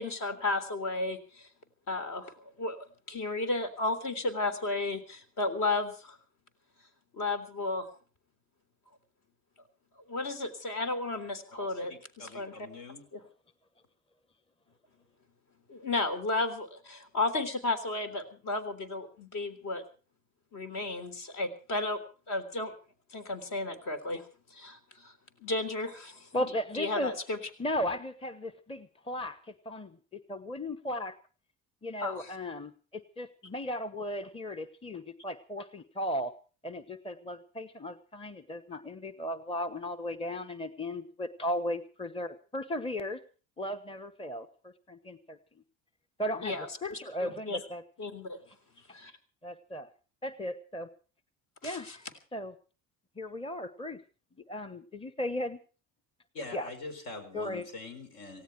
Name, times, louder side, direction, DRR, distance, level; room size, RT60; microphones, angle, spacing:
voice 1, 0.0-1.5 1.9-6.2 7.1-7.9 10.1-12.5 13.1-13.2 15.7-19.8 20.5-22.0 22.3-22.7 23.1-24.2 24.5-25.1 25.4-26.3 26.7-27.4 32.0-32.3 46.4-47.6 48.0-48.4 48.9-49.1 51.6-52.0, left 2 dB, 55° left, 8 dB, 3.6 m, -33 dB
voice 2, 11.6-13.1 56.3-58.4, left 2 dB, 70° left, 8 dB, 5.0 m, -44 dB
voice 3, 26.3-27.1 27.6-31.2 31.8-36.3 36.6-43.2 43.6-45.4 46.2-47.8 49.4-49.9 50.2-50.9 51.6-52.0 52.3-52.5 53.2-54.0 54.5-55.6 56.5-56.7 57.3-57.7, left 1 dB, 15° left, 11 dB, 1.1 m, -36 dB
18.0 x 16.5 x 4.6 m, 0.37 s
supercardioid pair, 95°, 38 cm